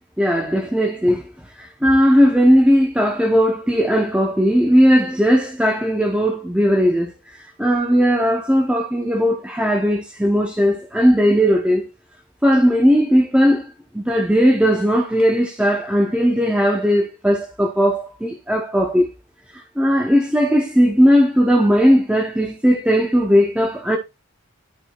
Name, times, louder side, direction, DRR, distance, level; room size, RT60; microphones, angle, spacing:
voice 1, 0.2-1.2 1.6-11.9 12.4-19.1 19.8-24.0, equal, 5° right, 0.8 m, -17 dB
12.0 x 4.7 x 2.4 m
head